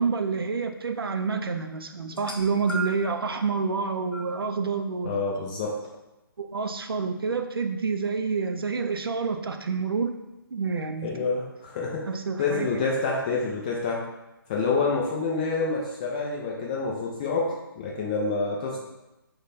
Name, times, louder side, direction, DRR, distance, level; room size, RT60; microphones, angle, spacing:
voice 1, 0.0-5.2 6.4-10.1 10.5-11.1 12.1-12.7, right 5 dB, 75° right, 6 dB, 0.4 m, -28 dB
sound 1, 2.1-3.2 4.1-4.3 5.3-5.4, right 3 dB, 70° left, 0.9 m, -35 dB
voice 2, 5.0-5.8 11.0-12.1 12.4-14.0 14.5-18.8, left 4 dB, 20° left, -3 dB, 0.3 m, -27 dB
3.1 x 2.2 x 4.1 m, 0.98 s
figure-of-eight pair, 140°, 12 cm